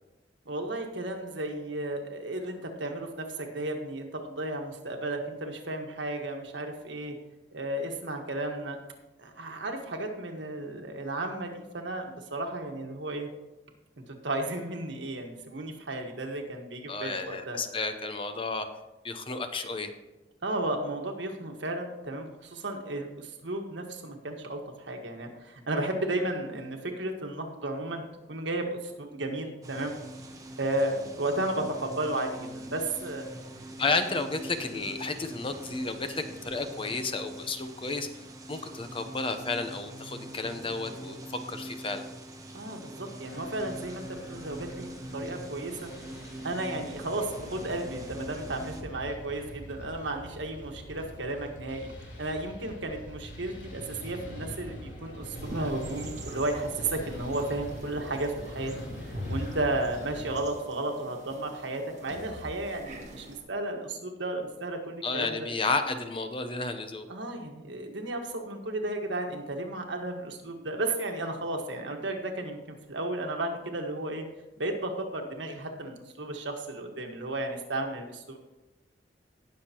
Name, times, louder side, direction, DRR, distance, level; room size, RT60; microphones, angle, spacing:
voice 1, 0.4-7.1 7.5-8.8 9.2-13.3 14.1-17.6 20.4-29.9 30.6-33.2 42.5-45.9 46.4-65.4 67.1-74.2 74.6-78.4, right 2 dB, 90° right, 3 dB, 1.5 m, -34 dB
voice 2, 16.9-18.7 19.0-19.9 33.8-38.1 38.5-42.0 65.0-67.1, left 3 dB, 30° left, 8 dB, 0.8 m, -32 dB
sound 1, 29.6-48.8, right 1 dB, 20° right, 1.1 m, -44 dB
sound 2, 43.2-60.4, left 1 dB, 90° left, 3.0 m, -44 dB
sound 3, 55.4-63.4, equal, 40° right, 1.8 m, -43 dB
18.5 x 6.6 x 3.0 m, 1.1 s
head